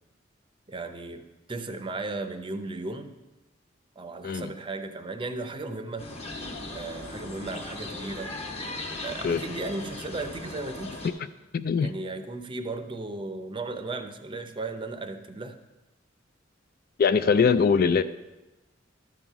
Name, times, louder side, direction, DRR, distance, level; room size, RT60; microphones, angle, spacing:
voice 1, 0.7-3.1 4.0-6.1 6.7-8.3 9.0-11.0 11.8-15.6 17.2-17.4, right 3 dB, 25° right, 8 dB, 0.6 m, -35 dB
sound 1, 6.0-11.1, left 2 dB, 35° left, 1.2 m, -38 dB
voice 2, 11.5-11.9 17.0-18.0, left 5 dB, 50° left, 12 dB, 0.3 m, -22 dB
13.0 x 5.6 x 4.6 m, 1.0 s
head